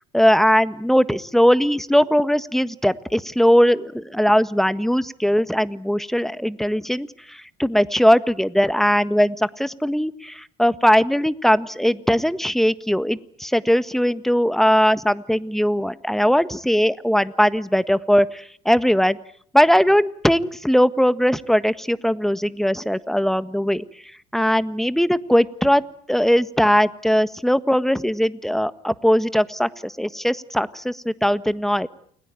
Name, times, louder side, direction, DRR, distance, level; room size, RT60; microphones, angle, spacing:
voice 1, 0.1-19.2 19.5-23.8 24.3-25.8 26.1-31.9, equal, ahead, 14 dB, 1.6 m, -19 dB
29.5 x 21.5 x 9.0 m, 0.63 s
hypercardioid pair, 65°, 21 cm